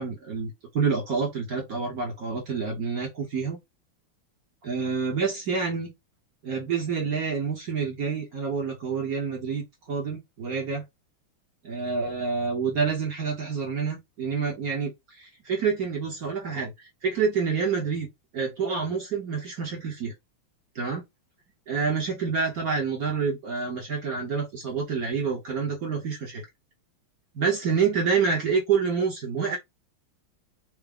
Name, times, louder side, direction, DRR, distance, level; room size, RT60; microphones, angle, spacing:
voice 1, 0.0-3.6 4.6-5.9 6.4-10.8 11.6-18.1 18.3-20.1 20.7-21.0 21.7-26.4 27.3-29.6, right 5 dB, 55° right, 1.0 m, -28 dB
4.6 x 2.0 x 3.5 m
omnidirectional pair, 2.4 m